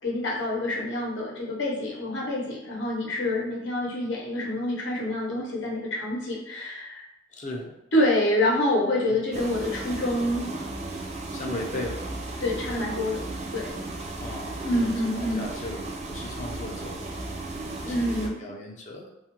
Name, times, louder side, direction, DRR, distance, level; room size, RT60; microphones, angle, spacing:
voice 1, 0.0-7.1 7.9-10.5 12.4-13.2 13.5-13.7 14.6-15.4 17.8-18.6, left 1 dB, 75° left, -3 dB, 0.7 m, -27 dB
voice 2, 7.3-7.8 9.1-9.2 11.3-12.0 14.2-19.1, left 1 dB, 40° left, 0 dB, 0.5 m, -37 dB
sound 1, 9.3-18.3, right 2 dB, 35° right, 0.3 m, -35 dB
2.3 x 2.1 x 2.9 m, 0.86 s
head